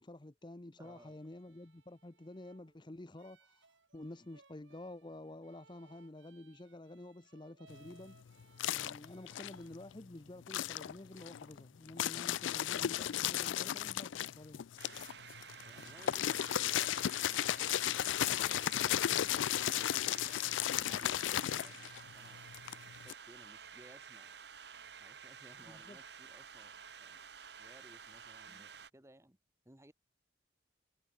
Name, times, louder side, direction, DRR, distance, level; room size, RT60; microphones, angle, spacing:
voice 1, 0.0-3.7 3.9-8.2 8.7-14.7 25.7-26.0 28.5-28.6, left 1 dB, 25° left, 0.7 m, -50 dB
voice 2, 0.8-1.2 15.5-20.5 20.8-22.5 23.0-24.3 25.0-27.3 27.6-29.4 29.6-29.9, right 1 dB, 15° right, 1.5 m, -60 dB
sound 1, 0.8-9.7, right 4 dB, 80° right, 7.7 m, -67 dB
sound 2, 7.7-10.0 10.4-23.1, left 11 dB, 85° left, 0.4 m, -35 dB
sound 3, 14.8-28.9, right 6 dB, 60° right, 1.8 m, -52 dB
head